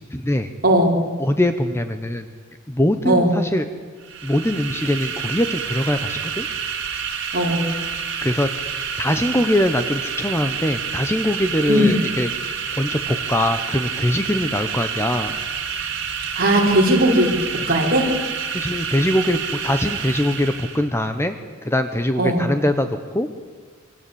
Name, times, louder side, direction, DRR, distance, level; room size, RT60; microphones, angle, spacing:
voice 1, 0.1-0.5 1.2-2.3 2.7-3.7 4.2-6.5 8.2-8.5 9.0-12.3 12.7-15.4 18.5-19.4 19.6-21.4 21.6-23.3, left 1 dB, 10° left, 8 dB, 1.1 m, -22 dB
voice 2, 0.6-1.0 3.0-3.3 7.3-7.6 11.6-11.9 16.4-17.3 17.7-18.1 22.2-22.4, right 1 dB, 45° right, -1 dB, 5.4 m, -17 dB
sound 1, 4.0-20.9, right 7 dB, 60° right, 3.9 m, -28 dB
26.5 x 25.0 x 8.7 m, 1.5 s
head